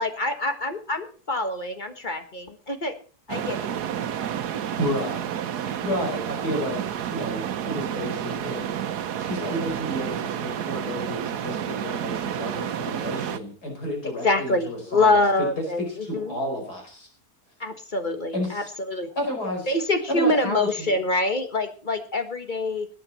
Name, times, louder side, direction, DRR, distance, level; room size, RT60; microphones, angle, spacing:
voice 1, 0.0-2.9 3.3-3.8 14.2-16.4 17.6-19.1 19.7-22.9, left 2 dB, 30° left, 6 dB, 1.5 m, -25 dB
sound 1, 3.3-13.4, right 9 dB, 85° right, 1.4 m, -30 dB
voice 2, 4.8-8.8 9.2-17.1 18.3-18.7 19.2-19.7 20.1-20.9, left 1 dB, 85° left, 1 dB, 5.5 m, -31 dB
20.0 x 9.3 x 4.2 m, 0.39 s
omnidirectional pair, 1.7 m